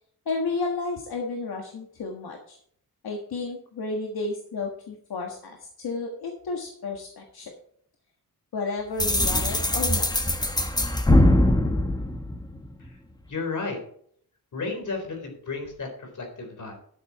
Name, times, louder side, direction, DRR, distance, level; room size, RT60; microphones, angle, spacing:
voice 1, 0.2-2.6 3.0-7.5 8.5-10.1, left 3 dB, 80° left, 2 dB, 1.6 m, -32 dB
sound 1, 9.0-12.9, left 1 dB, 10° left, 0.9 m, -22 dB
voice 2, 13.3-13.8 14.5-16.7, left 4 dB, 55° left, 3 dB, 3.9 m, -33 dB
12.0 x 7.3 x 4.7 m, 0.62 s
wide cardioid pair, 165°, 37 cm